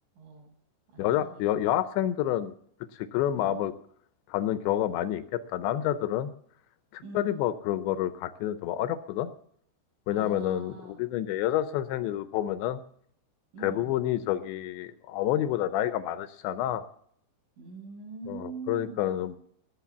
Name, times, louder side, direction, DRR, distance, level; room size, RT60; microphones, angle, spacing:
voice 1, 0.2-0.5 0.9-1.8 3.3-3.6 7.0-7.4 10.1-11.0 13.5-13.9 17.6-19.2, right 4 dB, 80° right, -1 dB, 10.0 m, -44 dB
voice 2, 1.0-2.5 2.9-3.7 4.3-6.3 6.9-9.3 10.1-12.8 13.6-16.8 18.3-19.4, left 12 dB, 80° left, 13 dB, 2.8 m, -28 dB
19.5 x 7.8 x 6.9 m, 0.65 s
omnidirectional pair, 5.4 m